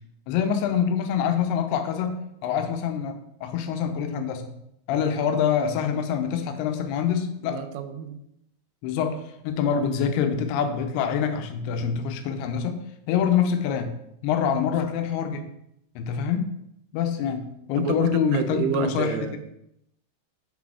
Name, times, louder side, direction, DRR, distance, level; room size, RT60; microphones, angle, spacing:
voice 1, 0.3-4.5 4.9-7.6 8.8-13.9 14.2-15.5 16.0-16.5 16.9-19.4, left 7 dB, 85° left, 7 dB, 2.7 m, -25 dB
voice 2, 7.4-8.2 17.8-19.4, right 7 dB, 90° right, 9 dB, 2.6 m, -29 dB
6.3 x 4.1 x 4.7 m, 0.78 s
omnidirectional pair, 4.5 m